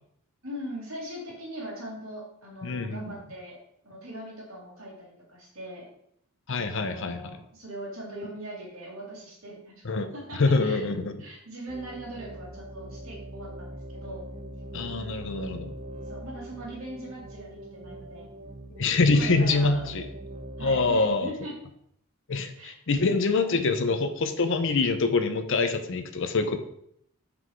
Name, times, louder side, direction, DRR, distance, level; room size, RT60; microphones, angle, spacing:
voice 1, 0.4-3.6 3.8-5.8 6.7-10.9 11.2-14.3 16.1-18.3 19.0-19.8 20.6-21.6 22.3-22.7 23.0-23.7, right 1 dB, 65° right, -2 dB, 2.7 m, -41 dB
voice 2, 2.6-3.0 6.5-7.2 9.8-11.2 14.7-15.7 18.8-20.0 20.6-21.3 22.3-26.6, left 3 dB, 60° left, 9 dB, 0.7 m, -25 dB
sound 1, 11.7-20.9, right 1 dB, 30° right, 0.9 m, -42 dB
6.1 x 4.8 x 4.7 m, 0.72 s
head